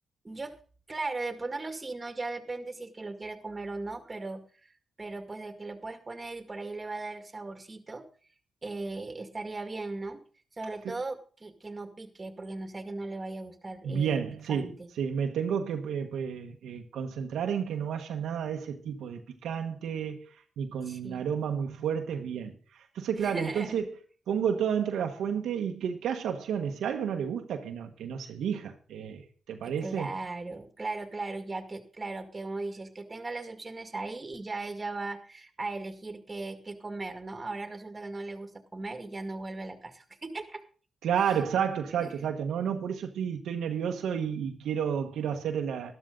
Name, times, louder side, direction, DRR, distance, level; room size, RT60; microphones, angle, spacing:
voice 1, 0.2-0.5 0.9-4.4 5.0-8.0 8.6-10.2 10.6-14.2 14.5-14.7 20.8-21.3 23.2-23.8 29.6-40.6 41.2-41.5 42.0-42.3, right 3 dB, 30° right, 2.1 m, -38 dB
voice 2, 13.8-14.7 15.0-20.3 20.6-22.5 22.9-23.8 24.3-30.1 41.0-45.9, right 7 dB, 85° right, 1.3 m, -31 dB
13.0 x 12.0 x 3.9 m
cardioid pair, 60°, 0 cm